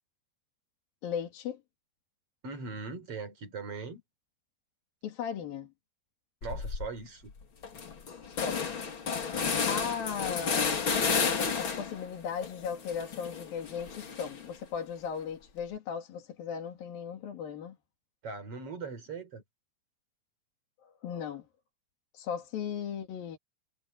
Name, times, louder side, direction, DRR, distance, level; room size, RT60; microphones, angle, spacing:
voice 1, 1.0-1.6 5.0-5.7 8.3-8.6 9.7-10.9 11.2-17.8 20.8-21.5 22.1-23.4, left 7 dB, 80° left, 4.2 m, -37 dB
voice 2, 2.4-4.0 6.4-7.3 18.2-19.4, right 4 dB, 40° right, 5.0 m, -40 dB
sound 1, 6.4-6.9 7.3-7.4 7.6-12.0 12.4-14.5, left 5 dB, 40° left, 2.6 m, -32 dB
omnidirectional pair, 4.1 m